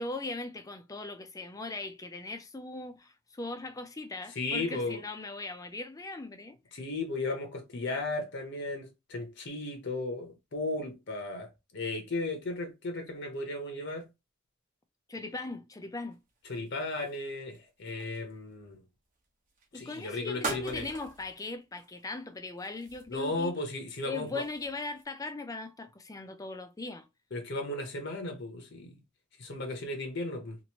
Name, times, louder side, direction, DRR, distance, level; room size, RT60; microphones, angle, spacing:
voice 1, 0.0-6.6 15.1-16.2 19.7-23.7 24.0-27.1, left 3 dB, 15° left, 0.4 m, -39 dB
voice 2, 4.4-5.0 6.7-11.5 11.7-14.1 16.5-18.8 19.7-20.9 23.1-24.4 27.3-28.9 29.4-30.6, left 2 dB, 60° left, 0.8 m, -35 dB
sound 1, 16.1-18.5 19.5-19.8 20.4-21.4 21.7-22.1 22.6-23.4 23.8-25.0, right 3 dB, 40° right, 0.8 m, -43 dB
3.0 x 2.6 x 2.9 m
head